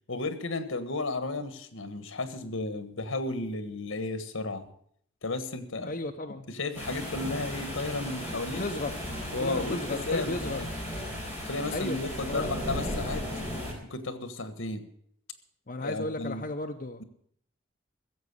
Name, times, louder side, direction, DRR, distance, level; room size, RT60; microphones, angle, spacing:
voice 1, 0.1-4.7 5.2-5.9 6.5-8.6 9.3-10.7 11.5-13.3 13.9-14.9 15.8-16.4, left 2 dB, 80° left, 10 dB, 1.4 m, -33 dB
voice 2, 5.8-6.5 8.6-8.9 9.4-10.6 11.7-12.0 12.3-12.5 15.7-17.0, left 2 dB, 40° left, 3 dB, 0.7 m, -34 dB
sound 1, 6.7-13.7, equal, 10° right, 4.4 m, -36 dB
16.0 x 7.4 x 8.1 m, 0.66 s
head